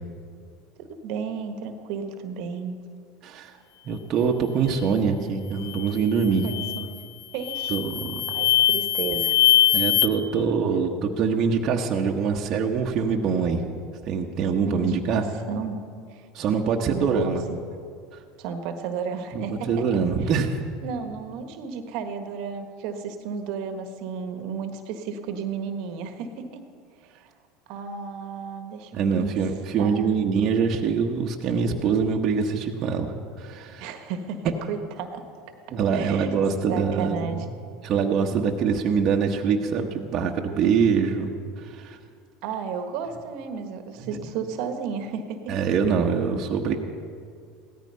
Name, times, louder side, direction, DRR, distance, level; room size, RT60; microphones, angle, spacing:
voice 1, 0.8-2.8 6.3-7.1 7.3-7.7 8.3-9.4 14.6-15.8 16.1-16.3 16.9-17.3 18.4-19.9 20.2-20.3 20.8-26.6 27.7-29.3 29.8-30.3 33.8-35.2 35.9-36.3 36.7-37.4 42.4-45.7, right 5 dB, 65° right, 7 dB, 1.4 m, -33 dB
voice 2, 3.2-3.6 3.8-6.4 7.7-8.2 9.7-13.6 14.0-15.2 16.3-17.4 18.1-18.2 19.3-20.6 28.9-33.1 33.4-33.9 35.7-37.5 37.8-41.3 41.6-42.0 44.0-44.3 45.5-46.8, right 6 dB, 45° right, 0 dB, 1.2 m, -24 dB
sound 1, 5.6-5.9 6.4-6.9 7.4-10.1, left 12 dB, 60° left, 0.8 m, -22 dB
16.5 x 13.5 x 5.6 m, 2.3 s
hypercardioid pair, 85°, 0 cm